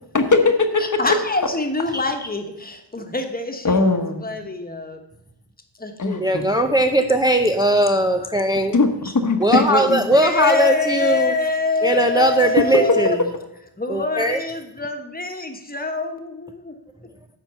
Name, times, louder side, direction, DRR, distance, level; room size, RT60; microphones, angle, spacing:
voice 1, 0.1-1.0 3.6-4.3 6.0-6.5 8.7-9.4 9.9-10.0, left 3 dB, 45° left, 6 dB, 1.1 m, -20 dB
voice 2, 0.8-5.0 5.8-6.2 9.5-13.2 13.8-16.7, left 3 dB, 20° left, 5 dB, 1.3 m, -25 dB
voice 3, 6.2-8.8 9.4-11.3 11.8-13.2 13.9-14.4, right 1 dB, 10° right, 5 dB, 0.6 m, -19 dB
10.0 x 4.4 x 7.0 m, 0.83 s
wide cardioid pair, 90°, 43 cm